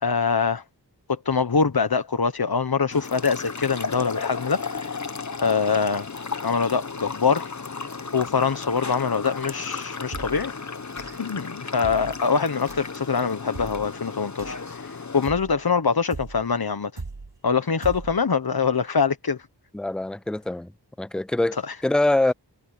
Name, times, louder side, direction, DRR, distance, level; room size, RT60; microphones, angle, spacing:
voice 1, 0.0-0.6 1.1-4.9 5.4-6.1 6.4-7.5 8.1-10.5 11.1-17.0 17.4-19.4 21.7-21.8, left 5 dB, 60° left, 1.2 m, -24 dB
sound 1, 2.9-15.3, left 4 dB, 40° left, 1.0 m, -34 dB
sound 2, 10.1-10.5 11.0-11.4 11.8-12.2 12.7-13.0 13.5-14.0 14.4-14.8 15.2-15.7 16.1-16.5 17.0-17.4 17.8-18.2, right 3 dB, 80° right, 6.6 m, -38 dB
voice 2, 19.7-20.7 21.0-22.3, left 2 dB, ahead, 0.3 m, -24 dB
wide cardioid pair, 45°, 42 cm